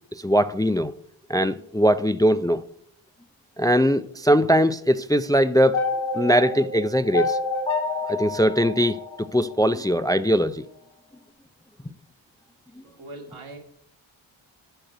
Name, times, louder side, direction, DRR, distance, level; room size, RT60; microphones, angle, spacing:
voice 1, 0.2-0.9 1.3-2.6 3.6-5.8 6.1-7.4 8.1-9.0 9.3-10.6, equal, 10° left, 0.4 m, -20 dB
sound 1, 5.7-9.9, left 3 dB, 75° left, 2.2 m, -28 dB
voice 2, 12.8-13.6, right 2 dB, 80° right, 2.4 m, -41 dB
8.8 x 6.3 x 7.8 m
cardioid pair, 45°, 49 cm